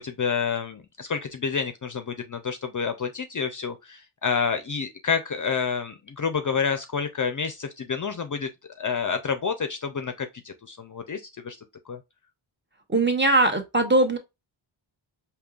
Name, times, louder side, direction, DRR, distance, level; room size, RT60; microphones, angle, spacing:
voice 1, 0.0-8.5 8.8-11.6 11.9-12.0, left 6 dB, 40° left, 0.5 m, -29 dB
voice 2, 12.9-14.2, right 2 dB, 20° right, 0.8 m, -20 dB
5.2 x 2.8 x 2.3 m
wide cardioid pair, 110°, 49 cm